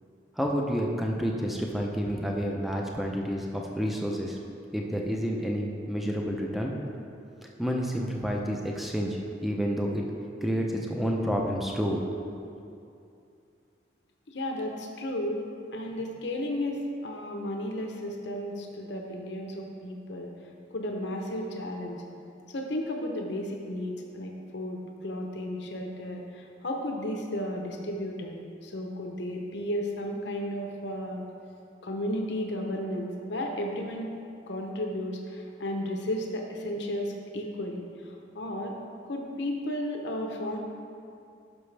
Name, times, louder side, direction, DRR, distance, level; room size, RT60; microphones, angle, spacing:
voice 1, 0.4-4.4 4.7-6.7 7.6-10.0 10.4-12.1, equal, ahead, 0 dB, 0.6 m, -29 dB
voice 2, 14.3-15.4 15.7-22.0 22.5-31.2 31.8-34.1 34.5-38.8 39.0-40.6, left 1 dB, 70° left, 1 dB, 0.8 m, -34 dB
10.5 x 6.1 x 3.3 m, 2.6 s
head